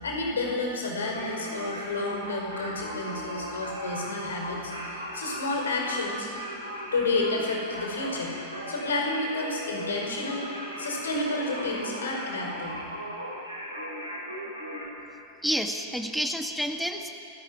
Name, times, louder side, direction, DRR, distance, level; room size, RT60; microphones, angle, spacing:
voice 1, 0.0-6.3 6.9-10.5 10.8-12.8, left 2 dB, 70° left, 1 dB, 5.3 m, -30 dB
Singing, 1.0-14.8, equal, 85° right, 5.5 m, -37 dB
voice 2, 15.4-17.1, equal, ahead, 4 dB, 1.9 m, -29 dB
29.0 x 13.5 x 9.7 m, 2.5 s
figure-of-eight pair, 90°, 0 cm